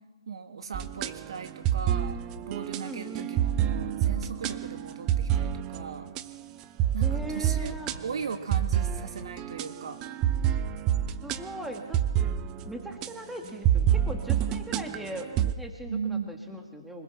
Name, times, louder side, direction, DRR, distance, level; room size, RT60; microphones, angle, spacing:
voice 1, 0.3-6.1 6.9-7.7 8.0-10.0 15.9-16.6, right 6 dB, 60° right, 7 dB, 2.2 m, -37 dB
sound 1, 0.7-6.4 6.8-13.1 13.5-15.6, right 10 dB, 20° right, 0.6 m, -28 dB
voice 2, 2.8-3.3 7.0-7.9 11.2-12.4 12.6-17.0, right 1 dB, 5° right, 2 dB, 1.8 m, -39 dB
25.0 x 20.0 x 6.0 m, 1.3 s
hypercardioid pair, 145°, 3 cm